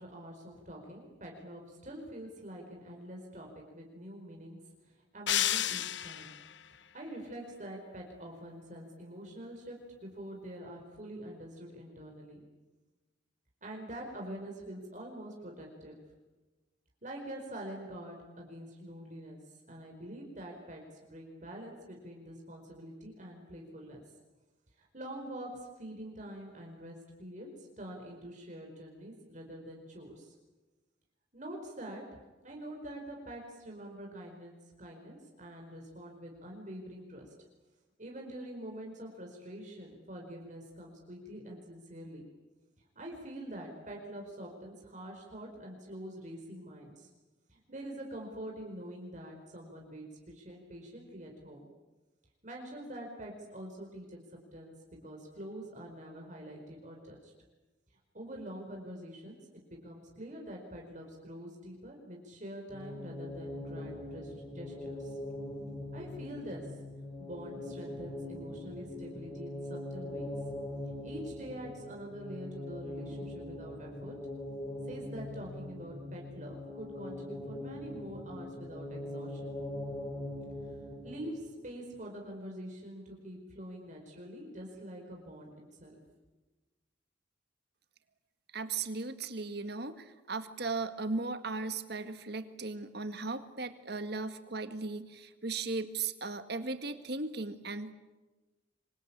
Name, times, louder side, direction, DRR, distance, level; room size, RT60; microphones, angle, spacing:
voice 1, 0.0-4.6 5.1-6.4 6.9-12.5 13.6-16.0 17.0-19.4 19.7-24.0 24.8-30.3 31.3-32.0 32.4-37.3 38.0-42.2 42.9-47.1 47.5-51.7 52.4-54.2 54.5-54.7 55.0-57.3 58.1-65.2 65.9-66.6 67.2-70.3 71.0-74.1 74.9-79.5 81.0-86.0, right 1 dB, 40° right, 0 dB, 4.9 m, -45 dB
sound 1, 5.3-6.5, left 12 dB, 70° left, 0.8 m, -31 dB
sound 2, 62.7-81.5, left 1 dB, 15° left, 5.1 m, -42 dB
voice 2, 88.5-97.9, right 3 dB, 60° right, 9 dB, 1.9 m, -37 dB
27.0 x 24.5 x 8.7 m, 1.2 s
head